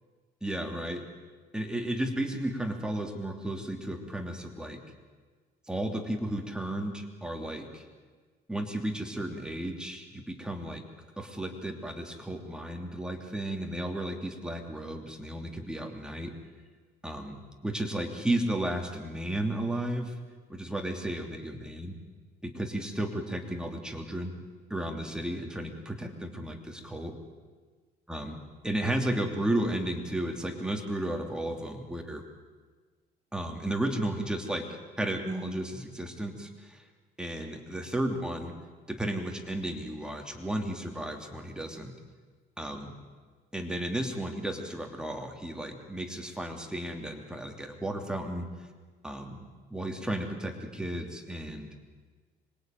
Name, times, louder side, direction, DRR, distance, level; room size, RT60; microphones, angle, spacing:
voice 1, 0.4-1.1 1.5-4.8 5.7-7.8 8.5-10.8 11.2-16.3 17.0-17.4 17.6-20.1 20.5-22.0 22.4-24.4 24.7-27.1 28.1-32.2 33.3-34.7 35.0-36.8 37.2-38.5 38.9-41.9 42.6-42.9 43.5-48.5 49.0-49.4 49.7-51.7, right 1 dB, 5° right, 3 dB, 3.0 m, -33 dB
26.0 x 22.0 x 9.2 m, 1.4 s
cardioid pair, 110°, 17 cm